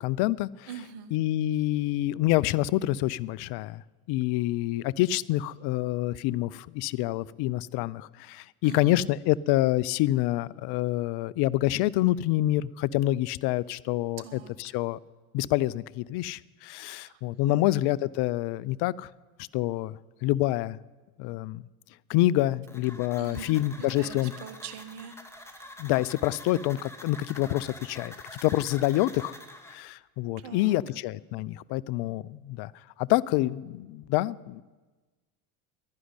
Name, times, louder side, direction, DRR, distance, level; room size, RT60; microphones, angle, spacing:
voice 1, 0.0-0.7 1.1-3.8 4.1-15.0 15.3-19.1 19.4-20.8 21.2-21.6 22.1-24.3 25.8-29.3 29.7-32.7 33.0-34.6, left 16 dB, 60° left, 21 dB, 0.6 m, -27 dB
voice 2, 0.7-1.1 8.6-9.1 14.2-14.7 16.9-17.7 23.2-25.8 30.4-30.8, right 8 dB, 65° right, 11 dB, 1.7 m, -44 dB
sound 1, 22.7-29.8, left 1 dB, 5° left, 2.2 m, -46 dB
11.5 x 10.5 x 9.7 m, 1.2 s
hypercardioid pair, 75°, 45 cm